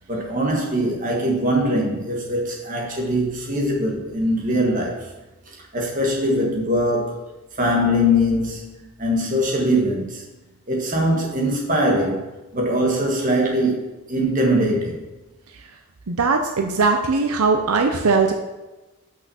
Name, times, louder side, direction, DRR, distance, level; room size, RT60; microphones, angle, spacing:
voice 1, 0.1-5.0 5.7-7.2 7.6-10.2 10.7-12.3 12.5-15.0, equal, 35° right, -1 dB, 1.5 m, -22 dB
voice 2, 16.1-18.3, right 4 dB, 80° right, 4 dB, 0.7 m, -20 dB
6.0 x 5.9 x 5.6 m, 1.1 s
head